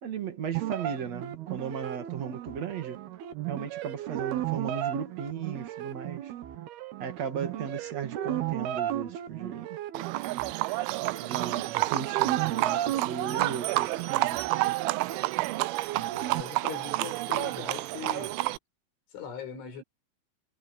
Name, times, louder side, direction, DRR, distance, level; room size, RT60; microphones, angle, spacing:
voice 1, 0.0-3.0 3.5-6.3 7.0-9.8 11.0-14.8, right 7 dB, 45° right, 2.7 m, -36 dB
sound 1, 0.6-16.4, right 12 dB, 65° right, 2.9 m, -35 dB
Livestock farm animals working animals, 9.9-18.6, right 20 dB, 80° right, 3.0 m, -29 dB
voice 2, 15.9-18.4 19.1-19.8, left 7 dB, 75° left, 8.4 m, -41 dB
omnidirectional pair, 5.6 m